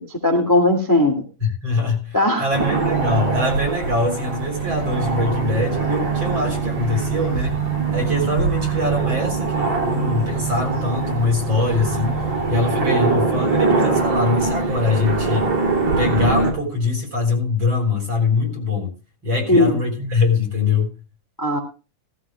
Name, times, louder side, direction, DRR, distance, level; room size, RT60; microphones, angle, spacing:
voice 1, 0.1-1.2 2.1-2.5 19.5-19.8 21.4-21.6, left 1 dB, 10° left, 2 dB, 1.3 m, -18 dB
voice 2, 1.4-7.6 7.9-15.5 16.0-18.9 19.2-20.9, left 3 dB, 40° right, 2 dB, 4.4 m, -23 dB
sound 1, 2.5-16.5, right 4 dB, 60° right, 3.9 m, -22 dB
17.0 x 15.0 x 2.3 m, 0.32 s
omnidirectional pair, 3.6 m